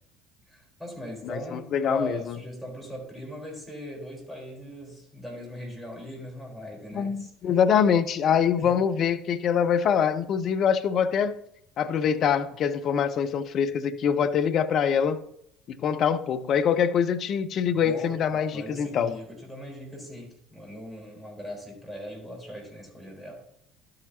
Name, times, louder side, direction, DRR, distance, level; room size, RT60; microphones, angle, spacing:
voice 1, 0.5-7.5 8.6-8.8 17.7-23.4, equal, 5° right, -1 dB, 3.9 m, -39 dB
voice 2, 1.2-2.4 6.9-11.4 11.8-15.2 15.7-19.1, left 7 dB, 45° left, 10 dB, 0.6 m, -24 dB
12.0 x 7.8 x 2.8 m, 0.75 s
figure-of-eight pair, 60°, 0 cm